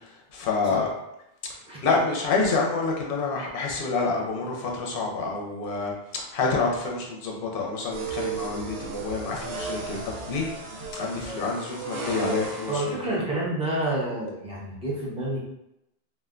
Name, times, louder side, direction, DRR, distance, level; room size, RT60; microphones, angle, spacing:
voice 1, 0.3-0.9 1.8-10.5 10.9-13.2, left 4 dB, 65° left, 0 dB, 0.8 m, -28 dB
sound 1, 7.9-12.9, right 3 dB, 85° right, 0.9 m, -34 dB
voice 2, 12.7-15.4, right 1 dB, 5° right, -6 dB, 0.7 m, -29 dB
2.4 x 2.2 x 3.6 m, 0.85 s
omnidirectional pair, 1.0 m